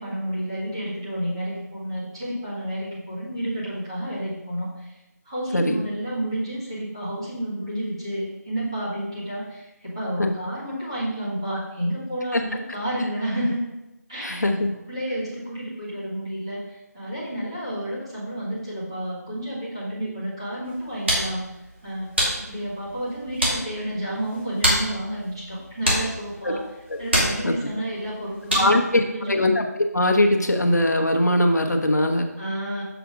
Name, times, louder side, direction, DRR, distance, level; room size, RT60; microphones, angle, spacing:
voice 1, 0.0-5.0 5.2-13.6 14.1-14.4 14.9-21.5 21.8-22.1 22.3-26.6 27.0-29.4 32.4-32.8, right 1 dB, 15° right, -10 dB, 1.9 m, -30 dB
voice 2, 14.2-14.7 26.4-26.6 27.4-27.5 28.5-29.0 29.3-32.3, left 1 dB, 70° left, 4 dB, 1.1 m, -21 dB
sound 1, 20.6-28.9, equal, 40° right, 2.4 m, -28 dB
7.1 x 6.1 x 3.8 m, 0.97 s
figure-of-eight pair, 180°, 10 cm